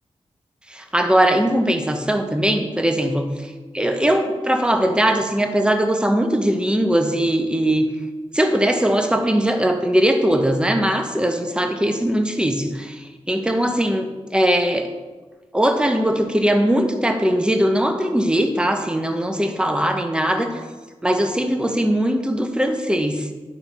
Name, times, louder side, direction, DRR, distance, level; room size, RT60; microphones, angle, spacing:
voice 1, 0.7-3.3 3.7-7.9 8.3-13.0 13.3-14.9 15.5-20.5 21.0-23.3, right 1 dB, 10° right, 5 dB, 0.9 m, -20 dB
11.0 x 3.8 x 4.2 m, 1.3 s
cardioid pair, 50°, 11 cm